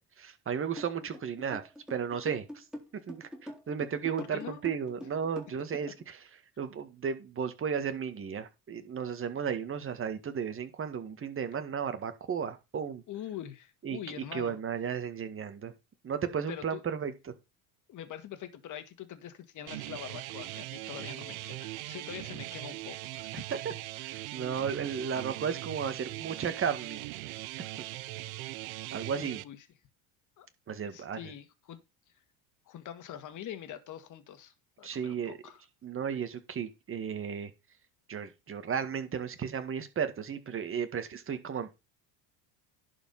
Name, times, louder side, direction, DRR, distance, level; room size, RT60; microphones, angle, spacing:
voice 1, 0.2-1.6 1.9-2.6 3.1-6.2 6.6-13.0 13.8-15.7 16.0-17.3 23.3-23.4 24.0-27.0 28.9-29.4 30.7-31.2 34.8-35.4 35.8-37.5 38.1-41.7, right 7 dB, 30° right, 1.8 m, -34 dB
sound 1, 0.8-6.0, equal, ahead, 3.7 m, -43 dB
voice 2, 4.2-4.6 13.1-14.6 16.5-16.8 17.9-23.4 29.2-29.6 30.4-30.5 30.9-31.8 32.7-35.6, left 10 dB, 45° left, 1.9 m, -44 dB
sound 2, 19.7-29.4, right 18 dB, 85° right, 0.8 m, -40 dB
11.0 x 5.0 x 5.5 m
supercardioid pair, 110°, 41 cm